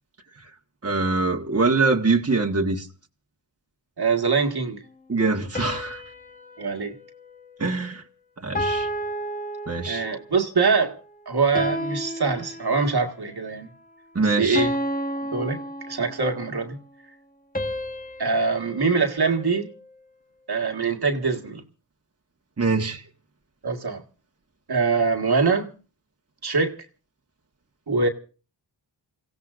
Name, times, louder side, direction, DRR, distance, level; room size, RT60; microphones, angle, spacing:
voice 1, 0.8-2.9 5.1-6.0 7.6-8.0 8.4-8.9 9.7-10.0 14.1-14.7 22.6-23.0, right 3 dB, 30° right, 1.6 m, -23 dB
voice 2, 4.0-4.8 6.6-6.9 9.9-11.0 11.3-13.7 14.4-14.7 15.3-16.8 18.2-19.7 20.5-21.6 23.6-24.0 24.7-25.7 26.4-26.8 27.9-28.1, right 4 dB, 55° right, 1.9 m, -23 dB
sound 1, 5.6-8.0 8.6-10.3 11.6-13.1 14.6-16.4 17.6-19.9, equal, 20° left, 1.7 m, -32 dB
30.0 x 16.0 x 2.6 m
cardioid pair, 50°, 45 cm